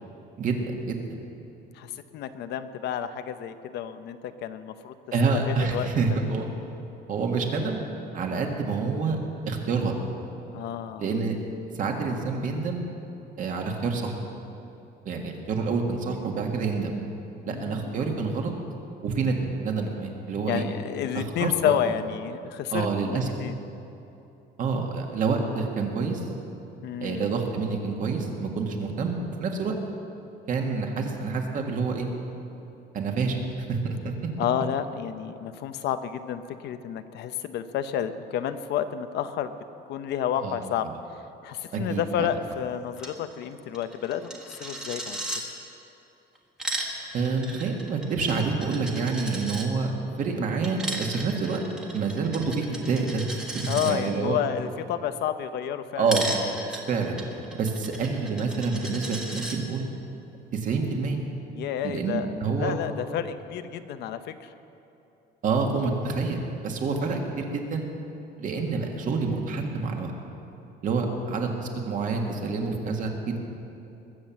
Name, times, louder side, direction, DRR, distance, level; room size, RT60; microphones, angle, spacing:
voice 1, 0.4-1.2 5.1-6.5 7.1-7.8 8.1-9.2 9.5-10.0 11.0-11.4 11.8-12.8 13.4-14.1 15.1-16.9 17.5-18.5 19.0-20.6 21.1-21.7 22.7-23.3 24.6-26.3 27.0-29.7 30.5-32.1 32.9-33.4 33.7-34.1 40.4-40.6 40.8-40.9 41.7-42.3 47.1-49.9 50.2-51.6 51.9-54.4 56.0-56.3 56.9-57.2 57.6-59.9 60.5-61.2 61.8-62.7 65.4-67.8 68.4-70.1 70.8-73.4, right 4 dB, 45° right, 2 dB, 1.8 m, -27 dB
voice 2, 1.7-4.9 5.3-5.9 10.5-11.1 17.4-18.0 20.5-23.6 26.8-27.3 34.4-39.6 39.9-40.9 41.4-45.2 53.7-56.1 61.5-64.5 71.1-71.2, left 9 dB, 65° left, 10 dB, 0.7 m, -30 dB
Coin (dropping), 43.0-43.1 43.4-43.5 43.7-45.4 46.4-49.7 50.6-53.9 56.1-59.6, right 1 dB, 5° right, 1.4 m, -35 dB
21.0 x 7.5 x 7.5 m, 2.8 s
cardioid pair, 170°, 19 cm